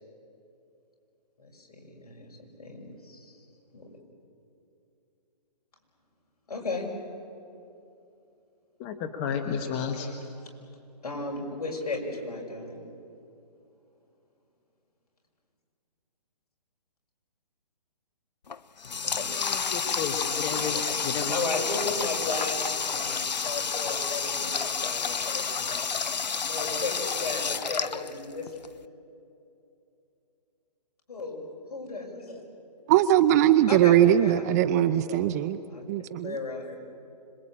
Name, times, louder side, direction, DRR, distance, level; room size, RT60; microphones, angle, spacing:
voice 1, 1.4-2.3 2.6-3.4 3.7-3.9 6.5-6.9 10.0-10.2 11.0-12.8 19.0-19.3 20.2-25.8 26.4-28.6 31.1-31.4 31.7-32.4 33.7-35.3 35.7-35.8 36.2-36.8, left 3 dB, 65° left, 1 dB, 6.5 m, -35 dB
voice 2, 8.8-10.1 19.4-21.6, left 6 dB, 25° left, 5 dB, 1.3 m, -32 dB
Water tap faucet, 18.5-28.7, left 5 dB, 85° left, 0.8 m, -30 dB
voice 3, 32.9-35.6 35.9-36.3, right 11 dB, 25° right, 13 dB, 0.6 m, -21 dB
26.0 x 22.5 x 8.8 m, 2.7 s
hypercardioid pair, 145°, 21 cm